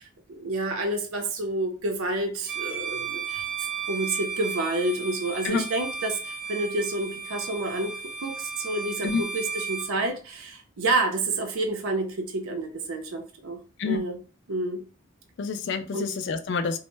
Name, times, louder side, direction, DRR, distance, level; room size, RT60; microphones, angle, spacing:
voice 1, 0.0-3.4 3.9-7.9 8.2-13.6 13.8-14.2 14.5-14.8 15.9-16.1, right 2 dB, 80° right, 4 dB, 0.5 m, -29 dB
Bowed string instrument, 2.4-9.9, right 5 dB, 5° right, 0.5 m, -34 dB
voice 2, 15.4-16.8, left 5 dB, 55° left, 9 dB, 0.3 m, -28 dB
2.1 x 2.0 x 3.1 m, 0.35 s
head